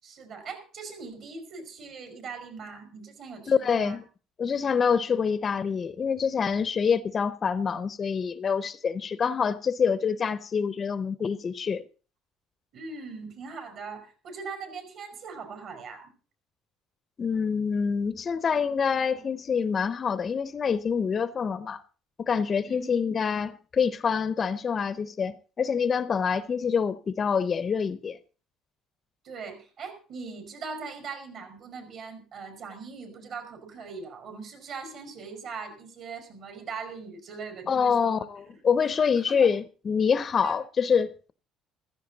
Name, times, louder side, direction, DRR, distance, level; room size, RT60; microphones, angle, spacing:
voice 1, 0.0-4.0 12.7-16.1 22.6-22.9 29.2-38.3 39.3-39.5 40.4-40.6, right 5 dB, 55° right, 5.1 m, -40 dB
voice 2, 3.5-4.0 4.4-11.8 17.2-21.8 22.2-28.2 37.7-41.3, left 6 dB, 30° left, 0.6 m, -26 dB
15.5 x 14.0 x 4.0 m
cardioid pair, 140°, 0 cm